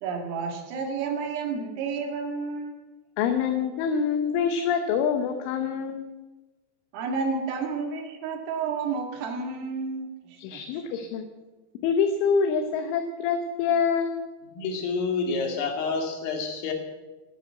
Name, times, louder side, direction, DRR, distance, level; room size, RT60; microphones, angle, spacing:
voice 1, 0.0-2.8 6.9-10.8, right 5 dB, 85° right, 3 dB, 4.8 m, -31 dB
voice 2, 3.2-6.1 10.4-11.2 11.8-14.2, left 6 dB, 80° left, 6 dB, 3.4 m, -25 dB
voice 3, 14.5-16.7, left 4 dB, 55° left, 3 dB, 3.8 m, -28 dB
18.0 x 10.0 x 7.6 m, 1.2 s
omnidirectional pair, 5.8 m